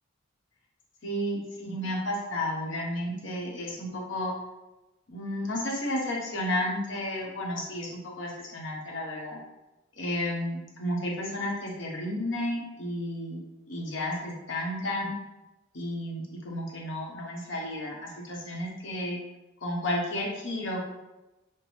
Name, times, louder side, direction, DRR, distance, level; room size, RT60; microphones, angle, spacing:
voice 1, 1.0-4.3 5.1-9.4 10.0-13.4 13.7-15.1 15.7-19.2 19.6-20.8, left 1 dB, 65° left, -2 dB, 1.0 m, -32 dB
5.9 x 2.1 x 3.2 m, 1.0 s
head